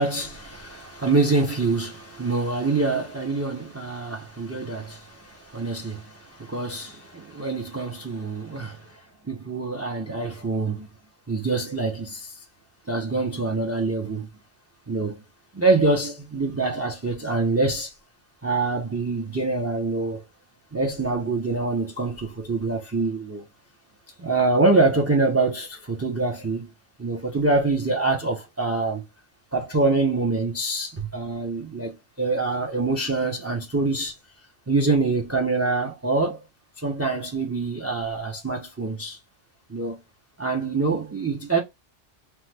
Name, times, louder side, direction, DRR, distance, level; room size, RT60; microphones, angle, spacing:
voice 1, 0.0-9.0 9.3-10.9 11.3-12.4 12.9-14.3 14.9-15.2 15.5-17.9 18.4-20.2 20.7-23.4 24.2-26.7 27.0-29.0 29.5-34.1 34.7-36.4 36.8-39.2 39.7-40.0 40.4-41.6, right 3 dB, 20° right, 0.4 m, -25 dB
3.0 x 2.1 x 3.2 m
omnidirectional pair, 1.3 m